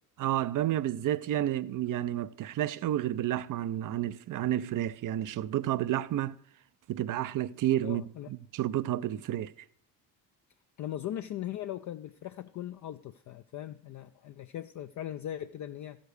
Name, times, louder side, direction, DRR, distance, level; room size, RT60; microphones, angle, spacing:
voice 1, 0.2-6.3 6.9-9.5, right 13 dB, 45° right, 0.5 m, -30 dB
voice 2, 7.8-8.3 10.8-16.0, left 11 dB, 45° left, 0.4 m, -39 dB
13.5 x 5.2 x 6.4 m
supercardioid pair, 80°, 44 cm